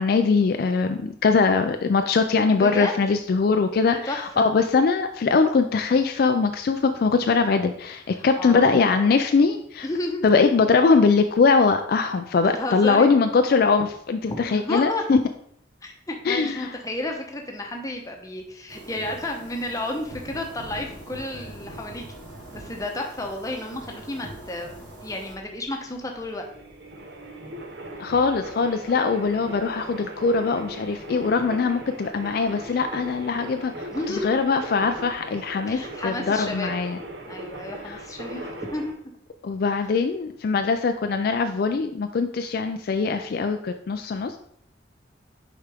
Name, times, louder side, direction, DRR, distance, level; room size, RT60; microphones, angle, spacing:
voice 1, 0.0-9.9 10.2-15.2 16.3-16.8 28.0-37.0 37.9-38.0 39.4-44.4, left 4 dB, 55° left, 7 dB, 0.3 m, -22 dB
voice 2, 2.6-2.9 3.9-4.4 8.1-8.8 9.8-10.2 12.5-13.1 14.3-15.0 15.8-22.2 22.5-26.4 33.9-34.3 35.7-36.7 37.3-38.9, left 1 dB, 20° left, 2 dB, 0.8 m, -32 dB
sound 1, 18.7-25.3, right 1 dB, 80° right, 2.7 m, -42 dB
sound 2, 24.5-38.9, right 1 dB, 60° right, 0.9 m, -39 dB
6.5 x 4.7 x 3.4 m, 0.69 s
head